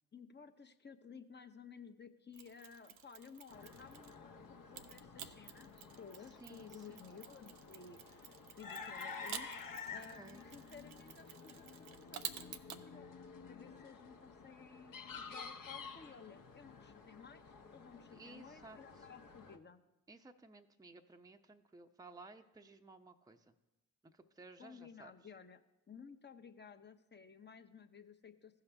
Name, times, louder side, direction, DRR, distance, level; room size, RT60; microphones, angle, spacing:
voice 1, 0.1-13.1 13.5-19.8 24.6-25.6 25.9-28.6, left 6 dB, 25° left, 7 dB, 0.9 m, -55 dB
Mechanisms, 2.3-4.2 4.7-12.8, right 10 dB, 90° right, 0.5 m, -51 dB
sound 1, 3.5-19.6, left 5 dB, 50° left, 1.0 m, -51 dB
voice 2, 6.4-7.1 9.9-10.4 18.1-19.1 20.1-23.5 24.0-25.1, right 3 dB, 10° right, 5 dB, 0.7 m, -57 dB
15.5 x 5.7 x 3.4 m, 0.99 s
hypercardioid pair, 40°, 40 cm